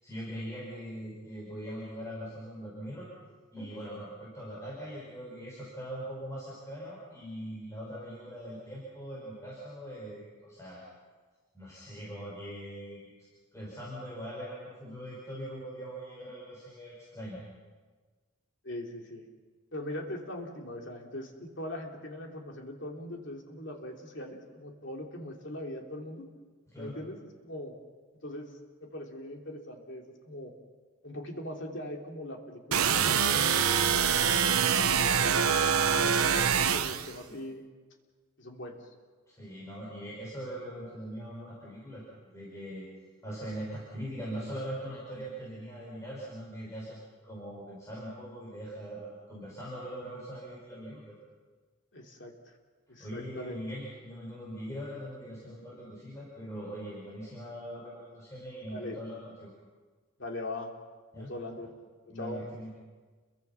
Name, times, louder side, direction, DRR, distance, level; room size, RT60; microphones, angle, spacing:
voice 1, 0.0-3.1 3.5-10.8 11.5-13.1 13.5-17.4 26.7-26.9 39.3-42.9 43.2-47.0 47.2-51.2 53.0-59.5 61.1-61.3 62.1-62.7, equal, 15° left, -6 dB, 5.5 m, -41 dB
voice 2, 18.6-19.2 19.7-26.3 26.8-27.7 28.2-28.5 28.8-30.5 31.0-36.3 36.7-37.7 38.4-38.8 51.9-52.5 52.9-53.6 58.7-59.0 60.2-60.7 61.1-61.7 62.1-62.4, left 1 dB, 55° left, 1 dB, 3.2 m, -41 dB
sound 1, 32.7-37.1, right 7 dB, 90° right, 1.0 m, -25 dB
29.5 x 23.0 x 5.9 m, 1.4 s
head